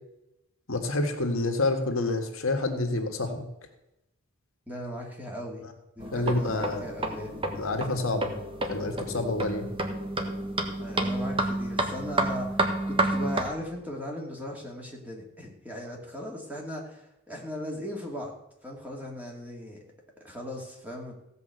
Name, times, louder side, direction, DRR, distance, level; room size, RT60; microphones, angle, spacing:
voice 1, 0.7-3.4 6.1-6.8 7.6-8.3 8.7-9.7, left 2 dB, 65° left, 4 dB, 1.7 m, -28 dB
voice 2, 4.7-5.7 6.0-7.4 10.8-18.3 18.6-19.8 20.2-21.2, equal, 5° right, -1 dB, 2.4 m, -38 dB
sound 1, 6.0-13.5, right 2 dB, 25° right, 1.4 m, -30 dB
16.0 x 5.4 x 7.9 m, 0.88 s
head